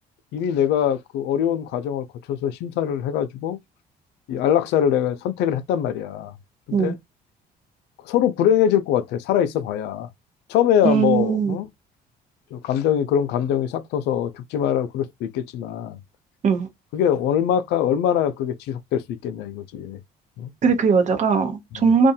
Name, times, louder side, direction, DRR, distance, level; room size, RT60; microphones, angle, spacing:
voice 1, 0.3-3.6 4.3-6.3 6.7-7.0 8.0-10.1 10.5-11.7 12.5-16.0 16.9-20.0 20.4-20.5, left 9 dB, 85° left, 0.5 m, -23 dB
voice 2, 10.8-11.6 16.4-16.7 20.6-22.1, right 5 dB, 45° right, 0.8 m, -19 dB
2.6 x 2.2 x 2.7 m
cardioid pair, 110°, 17 cm